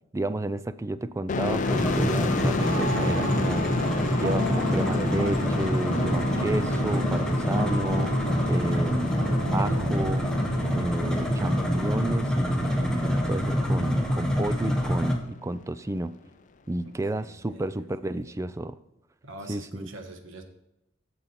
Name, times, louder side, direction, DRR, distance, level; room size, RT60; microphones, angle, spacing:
voice 1, 0.1-3.6 4.2-8.1 8.5-10.3 10.7-16.1 16.7-18.8 19.5-19.9, right 2 dB, 15° right, 14 dB, 0.4 m, -31 dB
sound 1, 1.3-14.7, left 4 dB, 40° left, 0.5 m, -33 dB
sound 2, 1.6-15.1, equal, 5° left, 1.2 m, -26 dB
sound 3, 2.6-11.7, right 1 dB, 65° right, 1.5 m, -35 dB
voice 2, 16.8-18.3 19.2-20.4, right 2 dB, 80° right, 5 dB, 1.3 m, -45 dB
8.9 x 7.0 x 4.2 m, 0.89 s
head